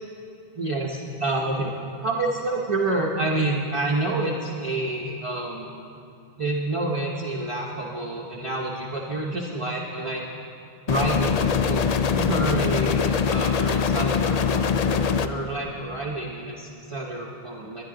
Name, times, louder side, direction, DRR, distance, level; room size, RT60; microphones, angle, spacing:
voice 1, 0.5-1.8 2.0-5.7 6.4-10.2 10.9-17.8, right 2 dB, 35° right, -3 dB, 0.9 m, -28 dB
sound 1, 10.9-15.3, left 6 dB, 50° left, 0.5 m, -23 dB
20.5 x 9.8 x 3.8 m, 2.6 s
omnidirectional pair, 1.0 m